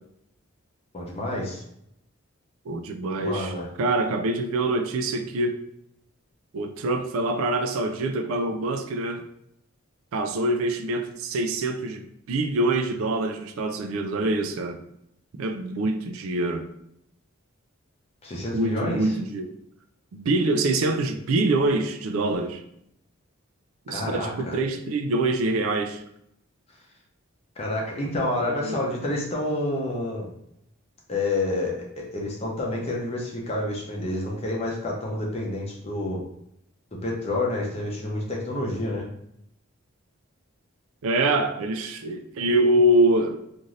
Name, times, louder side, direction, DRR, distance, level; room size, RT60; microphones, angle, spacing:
voice 1, 0.9-1.6 3.2-3.7 18.2-19.1 23.9-24.6 27.6-30.3 31.1-36.2 37.0-39.1, left 1 dB, 30° left, 0.6 m, -29 dB
voice 2, 2.7-5.6 6.5-9.2 10.1-14.8 15.4-16.7 18.5-19.5 20.1-22.6 23.9-26.0 28.5-28.8 41.0-43.4, right 2 dB, 70° right, 0.3 m, -25 dB
2.6 x 2.5 x 3.1 m
head